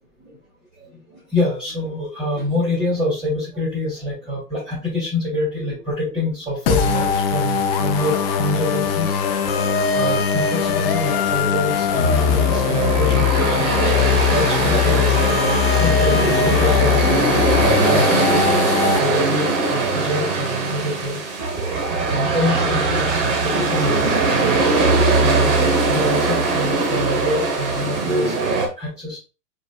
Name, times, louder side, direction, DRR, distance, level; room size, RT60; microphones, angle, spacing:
voice 1, 1.3-9.2 9.9-13.7 14.3-18.3 18.9-21.2 22.0-24.6 25.2-29.2, left 1 dB, 10° right, -8 dB, 2.5 m, -26 dB
sound 1, 6.7-19.0, left 8 dB, 35° left, 0.8 m, -20 dB
sound 2, 11.4-28.7, right 3 dB, 35° right, 1.4 m, -20 dB
4.8 x 4.5 x 2.2 m, 0.31 s
figure-of-eight pair, 120°, 48 cm